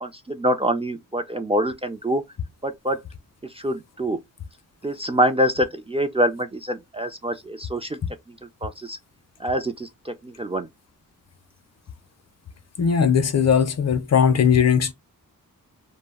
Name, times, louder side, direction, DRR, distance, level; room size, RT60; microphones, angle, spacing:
voice 1, 0.0-2.2 2.6-3.0 3.5-4.2 4.8-8.0 8.6-9.0 9.4-10.7, equal, 20° right, 0.3 m, -25 dB
voice 2, 12.8-14.9, left 7 dB, 50° left, 0.5 m, -19 dB
2.3 x 2.0 x 3.4 m
wide cardioid pair, 80°, 33 cm